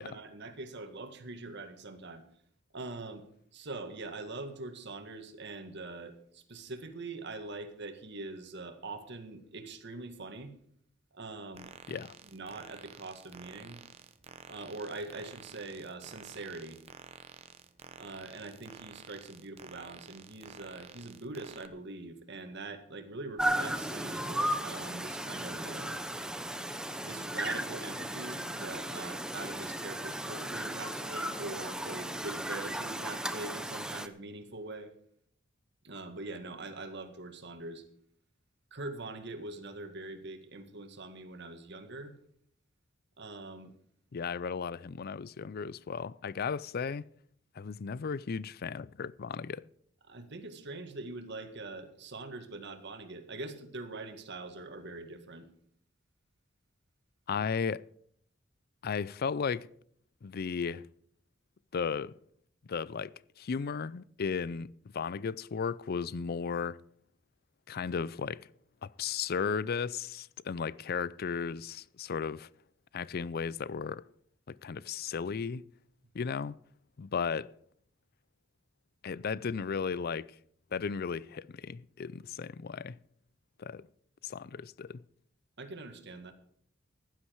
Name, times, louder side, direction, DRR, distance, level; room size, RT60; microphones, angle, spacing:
voice 1, 0.0-2.2 2.7-3.3 3.5-10.5 11.1-12.0 12.3-13.8 14.5-16.8 18.0-26.0 27.0-34.9 35.8-37.8 38.7-42.1 43.2-43.7 50.1-55.5 85.6-86.3, right 2 dB, 60° right, 1.9 m, -43 dB
sound 1, 11.5-21.7, right 5 dB, 30° right, 0.9 m, -51 dB
sound 2, 23.4-34.1, right 1 dB, 5° right, 0.8 m, -35 dB
voice 2, 44.1-47.1 47.6-49.6 57.3-57.8 58.8-59.7 60.2-60.9 61.7-62.1 62.6-66.8 67.7-68.5 68.8-72.5 72.9-74.0 74.5-75.7 76.1-76.6 77.0-77.5 79.0-80.4 80.7-83.0 83.6-83.9 84.2-85.0, left 6 dB, 50° left, 0.4 m, -35 dB
15.5 x 11.5 x 4.7 m
head